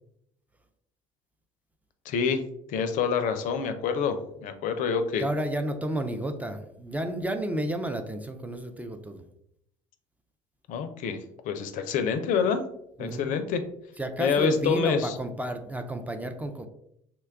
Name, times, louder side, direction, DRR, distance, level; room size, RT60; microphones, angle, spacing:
voice 1, 2.1-2.4 2.7-5.2 10.7-11.2 11.5-12.6 13.0-13.6 14.2-15.2, left 6 dB, 60° left, 8 dB, 0.4 m, -27 dB
voice 2, 5.2-9.2 13.0-13.3 14.0-16.7, right 1 dB, 10° right, 6 dB, 0.4 m, -31 dB
2.9 x 2.2 x 3.4 m, 0.74 s
hypercardioid pair, 65°, 15 cm